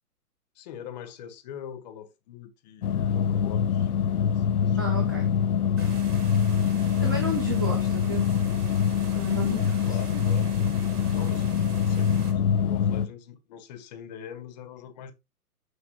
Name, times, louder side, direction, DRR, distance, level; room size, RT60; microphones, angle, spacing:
voice 1, 0.5-5.0 6.9-7.2 9.8-10.5 11.1-15.1, left 9 dB, 30° left, 0.7 m, -43 dB
sound 1, 2.8-13.1, left 7 dB, 70° left, 0.7 m, -24 dB
voice 2, 4.8-5.3 5.6-6.0 7.0-8.3 9.1-10.0, equal, 15° right, 0.4 m, -33 dB
sound 2, 5.8-12.3, right 5 dB, 80° right, 2.1 m, -46 dB
6.2 x 5.8 x 2.9 m
hypercardioid pair, 130°, 46 cm